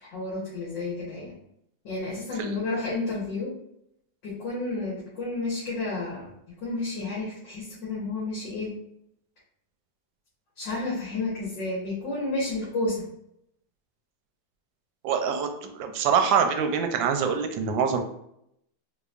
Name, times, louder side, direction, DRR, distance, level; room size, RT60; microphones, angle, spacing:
voice 1, 0.0-1.3 1.9-3.5 4.2-6.3 6.6-8.8 10.6-13.1, left 2 dB, 75° left, -7 dB, 1.8 m, -31 dB
voice 2, 15.0-18.0, right 6 dB, 85° right, 5 dB, 1.3 m, -25 dB
3.9 x 2.9 x 2.3 m, 0.76 s
omnidirectional pair, 2.0 m